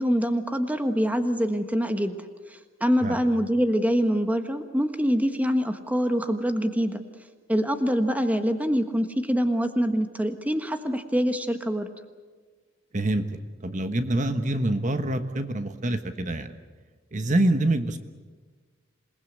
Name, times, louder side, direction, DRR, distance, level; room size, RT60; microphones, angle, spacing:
voice 1, 0.0-2.2 2.5-7.0 7.5-11.9, equal, 10° right, 8 dB, 1.2 m, -25 dB
voice 2, 13.6-16.5 17.1-18.0, right 1 dB, 40° right, 9 dB, 1.2 m, -25 dB
27.5 x 19.5 x 8.1 m, 1.5 s
head